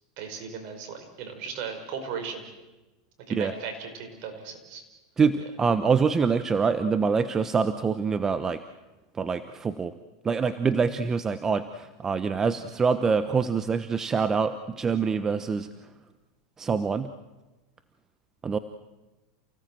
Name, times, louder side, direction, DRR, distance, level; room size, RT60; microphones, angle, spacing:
voice 1, 0.2-2.5 3.3-4.8, right 6 dB, 55° right, 6 dB, 5.5 m, -37 dB
voice 2, 5.2-8.6 9.2-9.9 10.2-15.7 16.6-17.1 18.4-18.6, right 5 dB, 20° right, 11 dB, 1.0 m, -25 dB
29.0 x 17.5 x 7.7 m, 1.1 s
hypercardioid pair, 110°, 2 cm